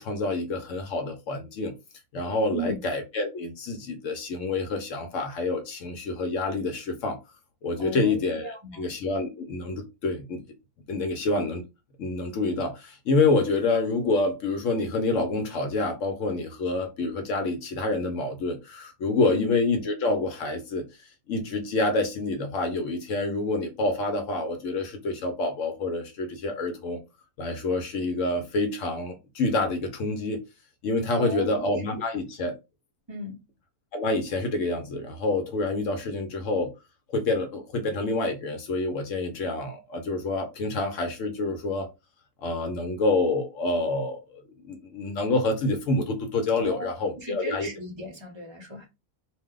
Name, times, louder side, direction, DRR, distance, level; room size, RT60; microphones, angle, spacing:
voice 1, 0.0-1.7 2.1-7.2 7.6-8.5 8.7-10.4 10.9-11.6 12.0-20.8 21.3-27.0 27.4-30.4 30.8-32.5 33.9-36.7 37.1-41.9 42.4-47.7, left 2 dB, 65° left, 0.9 m, -27 dB
voice 2, 7.8-8.9 19.3-19.5 31.1-31.6 32.0-32.2 33.1-33.4 46.6-48.9, equal, 35° right, 0.4 m, -36 dB
2.6 x 2.1 x 3.5 m
omnidirectional pair, 1.5 m